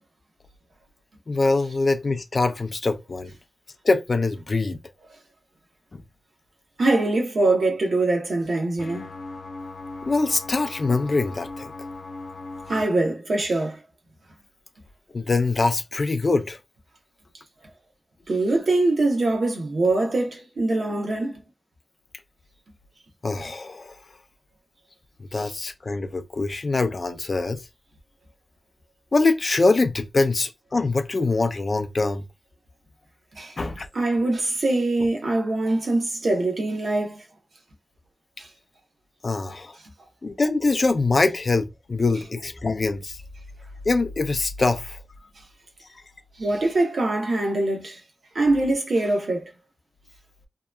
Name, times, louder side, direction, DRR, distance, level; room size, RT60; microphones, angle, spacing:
voice 1, 1.3-3.3 3.8-4.8 10.0-11.7 15.1-16.6 23.2-23.9 25.3-27.6 29.1-32.2 33.6-33.9 39.2-39.7 40.2-43.2 43.9-45.0, left 3 dB, 45° left, 0.4 m, -23 dB
voice 2, 6.8-9.1 12.7-13.8 18.3-21.4 25.4-25.5 33.3-33.5 33.9-37.2 38.4-38.5 46.4-48.0 48.3-49.5, right 2 dB, 70° right, 0.8 m, -23 dB
sound 1, 8.8-12.8, left 3 dB, 80° left, 0.7 m, -38 dB
2.8 x 2.2 x 2.3 m
wide cardioid pair, 115°, 0 cm